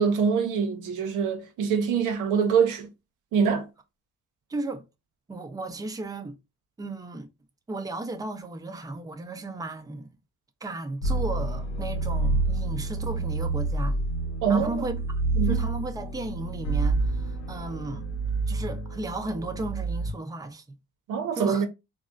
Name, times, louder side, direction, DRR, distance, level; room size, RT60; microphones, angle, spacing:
voice 1, 0.0-2.9 3.3-3.7 14.4-14.9 15.3-15.6 21.1-21.7, right 6 dB, 90° right, 0.7 m, -24 dB
voice 2, 4.5-4.8 5.3-6.4 6.8-7.3 7.7-10.1 10.6-14.0 14.5-14.9 15.4-18.0 18.5-20.6 21.4-21.7, right 2 dB, 10° right, 0.6 m, -34 dB
sound 1, 11.0-20.1, right 3 dB, 65° left, 0.8 m, -28 dB
3.6 x 2.0 x 2.5 m
cardioid pair, 90°, 30 cm